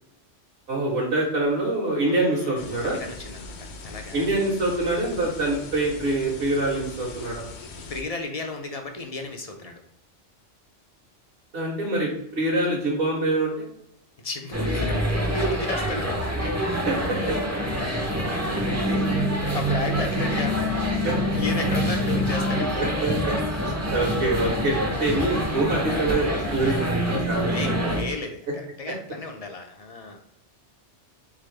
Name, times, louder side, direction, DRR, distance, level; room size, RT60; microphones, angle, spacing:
voice 1, 0.7-3.0 4.1-7.4 11.5-13.6 16.9-17.2 21.0-21.1 22.8-23.3 23.9-27.9, right 2 dB, 60° right, -4 dB, 1.5 m, -25 dB
voice 2, 2.1-4.3 7.9-9.8 14.2-16.2 18.9-20.6 20.9-21.1 21.4-22.8 25.3-26.0 27.5-30.2, left 3 dB, 50° left, 3 dB, 0.4 m, -34 dB
sound 1, 2.6-8.0, left 3 dB, 65° left, 0.9 m, -40 dB
sound 2, 14.5-28.0, equal, 20° right, 0.5 m, -25 dB
4.1 x 3.6 x 3.2 m, 0.74 s
omnidirectional pair, 1.3 m